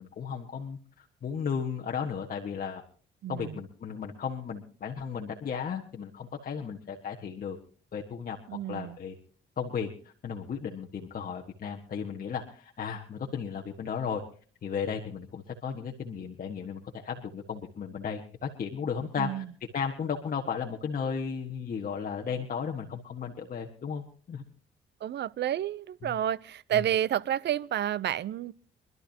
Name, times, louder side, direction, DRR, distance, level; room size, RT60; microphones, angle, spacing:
voice 1, 0.0-2.8 3.3-7.6 7.9-8.4 8.7-9.1 9.6-9.9 10.2-14.2 14.6-19.4 19.7-24.4 26.0-26.2 26.7-26.8, left 6 dB, 45° left, 1.5 m, -35 dB
voice 2, 3.2-3.6 8.5-9.0 19.2-19.5 25.0-28.5, right 11 dB, 60° right, 0.6 m, -30 dB
25.0 x 12.5 x 2.9 m
cardioid pair, 90°, 20 cm